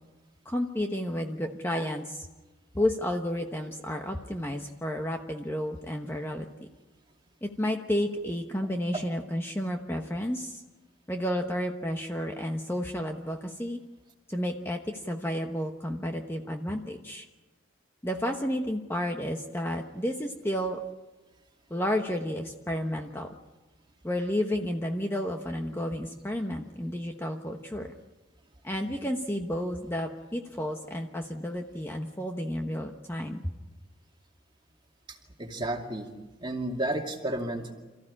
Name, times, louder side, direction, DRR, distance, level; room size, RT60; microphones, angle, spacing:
voice 1, 0.4-2.3 2.7-6.5 7.4-10.6 11.1-13.8 14.3-17.3 18.0-20.8 21.7-23.3 24.0-27.9 28.6-33.4, equal, 10° left, 3 dB, 1.1 m, -31 dB
voice 2, 35.1-36.1 36.4-37.7, right 1 dB, 25° right, 2 dB, 2.5 m, -32 dB
28.0 x 15.0 x 9.9 m, 1.2 s
head